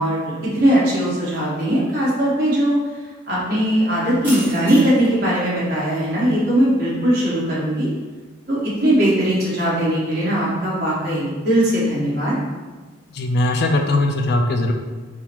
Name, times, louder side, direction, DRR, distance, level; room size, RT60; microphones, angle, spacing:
voice 1, 0.0-2.8 3.3-7.9 8.5-12.4, right 1 dB, 50° right, -7 dB, 1.2 m, -19 dB
sound 1, 3.7-13.3, right 1 dB, 10° right, 0.8 m, -41 dB
voice 2, 13.1-14.7, left 2 dB, 55° left, 4 dB, 0.3 m, -19 dB
3.6 x 2.1 x 4.4 m, 1.3 s
head